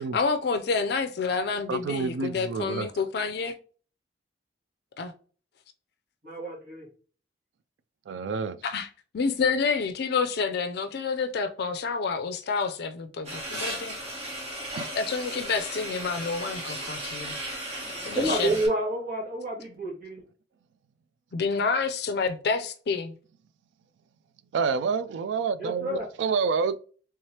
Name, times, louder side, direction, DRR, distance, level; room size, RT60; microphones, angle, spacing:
voice 1, 0.1-3.6 5.0-5.1 8.6-8.9 9.1-14.0 15.0-17.4 18.1-18.5 21.3-23.1, left 5 dB, 60° left, 0.4 m, -28 dB
voice 2, 1.7-2.9 8.1-8.6 14.8-14.9 24.5-26.8, right 5 dB, 80° right, 0.3 m, -28 dB
voice 3, 6.2-6.9 18.1-20.2 25.6-26.0, right 1 dB, 55° right, 1.6 m, -29 dB
sound 1, 13.2-18.7, right 1 dB, 35° right, 1.4 m, -36 dB
3.5 x 3.2 x 2.8 m
head